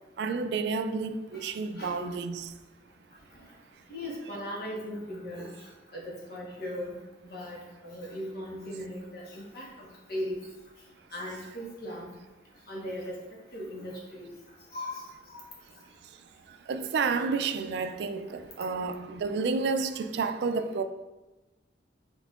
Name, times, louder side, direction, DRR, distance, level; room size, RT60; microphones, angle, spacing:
voice 1, 0.2-2.5 16.7-20.8, right 4 dB, 65° right, 0.3 m, -30 dB
voice 2, 3.9-5.5 5.9-6.9 7.2-7.6 7.8-10.4 11.1-12.1 12.7-13.2 13.5-14.3 14.7-15.4 17.7-17.8, left 1 dB, 55° left, 1.2 m, -38 dB
5.4 x 3.5 x 2.4 m
head